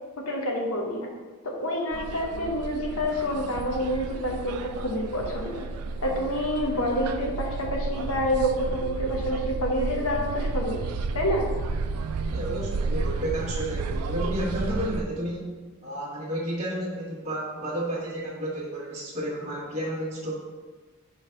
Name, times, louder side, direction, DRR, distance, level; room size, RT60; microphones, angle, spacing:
voice 1, 0.2-1.1 1.4-5.7 6.0-10.8 11.1-11.5, equal, 70° left, 0 dB, 0.9 m, -28 dB
sound 1, 1.9-15.0, right 4 dB, 85° right, 0.4 m, -32 dB
voice 2, 12.3-15.5 15.8-20.3, right 1 dB, 30° right, -7 dB, 1.1 m, -31 dB
4.9 x 3.4 x 5.6 m, 1.4 s
head